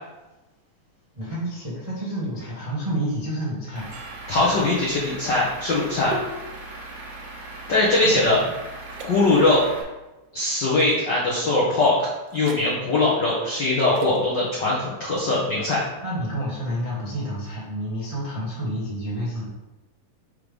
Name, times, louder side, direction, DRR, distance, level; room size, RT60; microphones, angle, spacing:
voice 1, 1.1-4.7 8.0-8.4 16.0-19.4, equal, 25° right, -8 dB, 0.7 m, -30 dB
Truck / Idling, 3.8-9.8, right 2 dB, 60° right, 2.1 m, -39 dB
sound 1, 3.9-8.4 8.9-9.1 10.8-11.0 12.3-12.7 13.9-14.2, right 3 dB, 80° right, 2.0 m, -38 dB
voice 2, 4.3-6.2 7.7-8.4 9.0-9.7 10.3-15.8, left 2 dB, 75° left, -5 dB, 1.0 m, -21 dB
5.7 x 3.2 x 5.2 m, 1.1 s
omnidirectional pair, 3.6 m